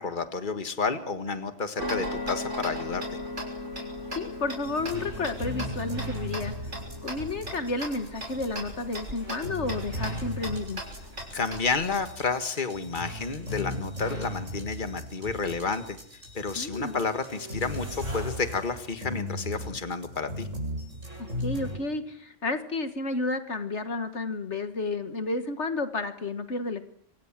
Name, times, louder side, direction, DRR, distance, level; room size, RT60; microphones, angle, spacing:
voice 1, 0.0-3.2 11.3-16.0 16.3-20.5, left 4 dB, 40° left, 9 dB, 1.9 m, -30 dB
Tick-tock, 1.8-12.0, equal, 70° right, 6.6 m, -37 dB
voice 2, 4.1-6.5 7.0-10.8 16.6-17.0 21.2-26.8, left 3 dB, 65° left, 9 dB, 2.0 m, -31 dB
sound 1, 4.6-21.8, equal, 90° right, 8.6 m, -37 dB
27.5 x 26.0 x 7.5 m, 0.64 s
omnidirectional pair, 1.3 m